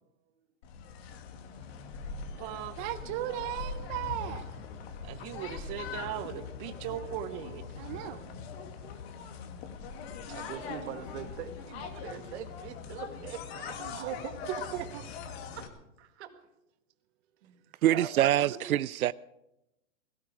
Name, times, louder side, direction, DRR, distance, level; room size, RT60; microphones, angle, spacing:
sound 1, 0.6-15.7, left 6 dB, 45° left, 2.2 m, -42 dB
voice 1, 2.4-4.4 5.0-8.2 13.8-14.2 14.7-15.0, right 13 dB, 25° right, 0.5 m, -37 dB
voice 2, 3.2-3.5 4.9-5.0 6.7-6.8 10.0-14.7 15.5-15.7 16.0-16.4 17.4-18.6, right 9 dB, 50° right, 2.1 m, -43 dB
voice 3, 17.8-19.1, right 13 dB, 90° right, 0.5 m, -25 dB
17.5 x 16.5 x 4.8 m
hypercardioid pair, 135°, 42 cm